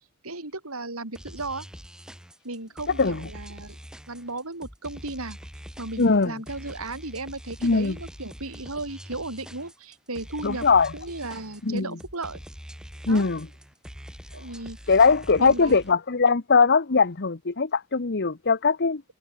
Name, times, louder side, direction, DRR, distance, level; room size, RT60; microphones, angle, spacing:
voice 1, 0.2-1.6 2.4-3.8 4.1-5.4 5.8-10.7 10.9-12.4 13.1-13.3 14.3-14.8 15.4-15.8, right 2 dB, 85° right, 6.2 m, -35 dB
sound 1, 1.1-15.9, equal, 5° right, 7.9 m, -43 dB
voice 2, 6.0-6.3 7.6-8.0 10.4-10.9 11.6-11.9 13.1-13.5 14.9-19.0, left 4 dB, 50° left, 1.0 m, -21 dB
head